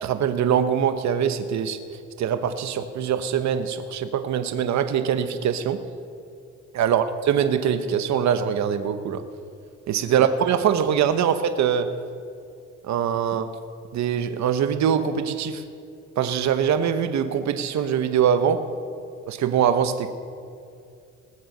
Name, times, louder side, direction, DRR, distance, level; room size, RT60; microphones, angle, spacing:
voice 1, 0.0-1.8 2.2-5.8 6.7-9.2 9.9-11.9 12.8-13.5 13.9-15.6 16.2-18.6 19.3-20.1, right 8 dB, 65° right, 9 dB, 0.9 m, -23 dB
20.0 x 7.7 x 6.6 m, 2.5 s
cardioid pair, 90°, 30 cm